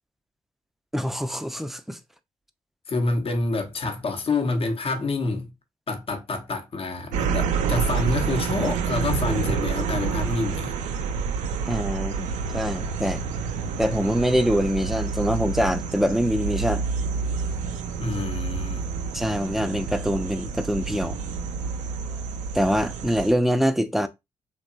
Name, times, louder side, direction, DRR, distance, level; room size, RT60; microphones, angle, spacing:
voice 1, 0.9-2.0 11.7-13.2 13.8-16.9 19.1-21.2 22.5-24.1, equal, ahead, 0.4 m, -24 dB
voice 2, 2.9-5.5 5.9-10.8 18.0-18.8, left 3 dB, 50° left, 0.8 m, -27 dB
sound 1, 7.1-23.3, right 5 dB, 80° right, 0.4 m, -28 dB
2.8 x 2.2 x 2.5 m
supercardioid pair, 45°, 12 cm